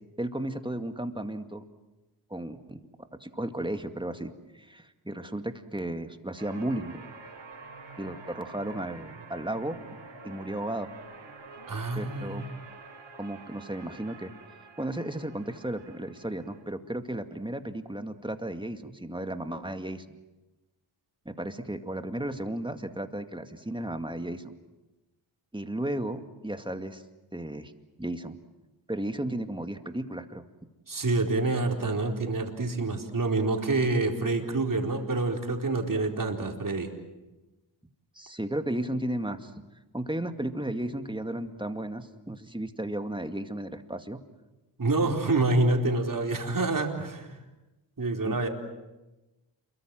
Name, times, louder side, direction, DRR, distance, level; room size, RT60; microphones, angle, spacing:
voice 1, 0.2-1.6 2.3-7.0 8.0-9.8 10.2-10.9 12.0-12.4 13.2-14.3 14.8-20.2 21.3-24.5 25.5-27.0 27.3-27.7 28.0-28.4 28.9-30.4 38.2-39.5 39.9-44.2 48.3-48.4, right 1 dB, 10° right, 8 dB, 2.2 m, -34 dB
sound 1, 6.4-16.6, right 4 dB, 75° right, 5.4 m, -48 dB
voice 2, 11.7-12.5 30.9-36.9 44.8-47.4 48.0-48.5, right 2 dB, 40° right, 2 dB, 4.3 m, -27 dB
28.5 x 23.5 x 7.8 m, 1.1 s
cardioid pair, 55°, 48 cm